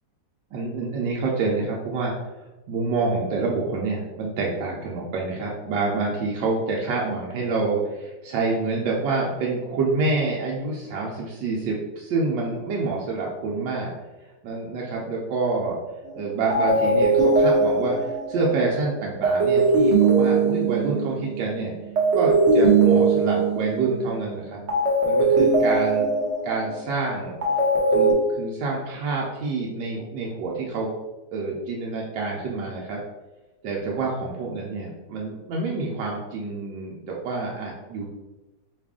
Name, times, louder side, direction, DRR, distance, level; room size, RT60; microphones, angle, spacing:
voice 1, 0.5-2.1 2.7-13.9 14.4-15.8 16.1-21.7 22.1-24.6 25.0-26.1 26.4-27.4 27.9-30.9 31.3-33.0 33.6-38.1, right 3 dB, 90° right, -3 dB, 1.3 m, -27 dB
sound 1, 16.0-16.2 16.5-21.4 22.0-24.2 24.7-28.1, right 3 dB, 45° right, 1.0 m, -20 dB
4.9 x 2.4 x 3.5 m, 1.1 s
omnidirectional pair, 1.9 m